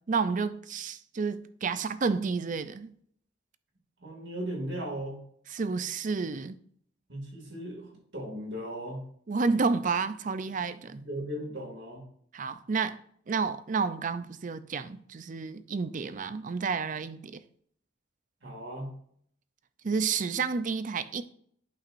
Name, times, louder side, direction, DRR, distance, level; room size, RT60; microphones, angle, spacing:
voice 1, 0.1-2.9 5.5-6.6 9.3-11.0 12.3-13.0 13.3-17.4 19.8-21.2, right 4 dB, 45° right, 0.5 m, -30 dB
voice 2, 4.0-5.2 7.1-9.0 10.9-12.0 18.4-18.9, right 1 dB, 65° right, 2.4 m, -37 dB
11.0 x 5.7 x 2.6 m
head